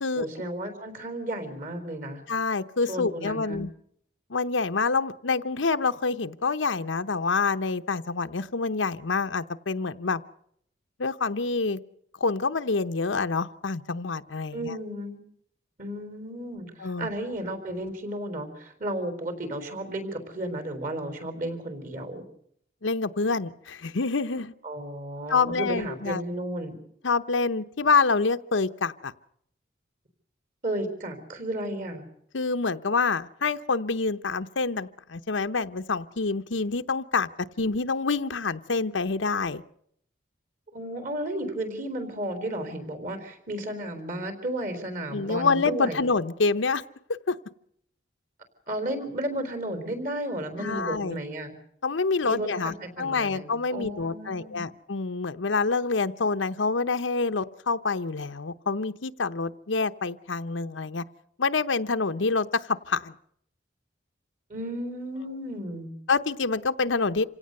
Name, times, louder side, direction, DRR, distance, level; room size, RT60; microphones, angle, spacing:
voice 1, 0.2-2.2 2.9-3.6 14.5-15.2 15.8-22.2 24.6-26.8 30.6-32.0 40.7-46.0 48.7-51.5 52.2-54.7 64.5-65.9, right 1 dB, 45° right, 9 dB, 4.2 m, -33 dB
voice 2, 2.3-3.7 4.3-10.2 11.0-11.8 12.2-14.8 16.8-17.1 22.8-24.5 25.3-26.2 27.0-29.1 32.3-39.6 45.1-46.8 47.3-47.4 50.6-51.2 51.8-61.0 61.4-63.1 65.3-65.4 66.1-67.2, left 4 dB, 90° left, 9 dB, 0.9 m, -27 dB
27.0 x 17.0 x 6.7 m, 0.69 s
head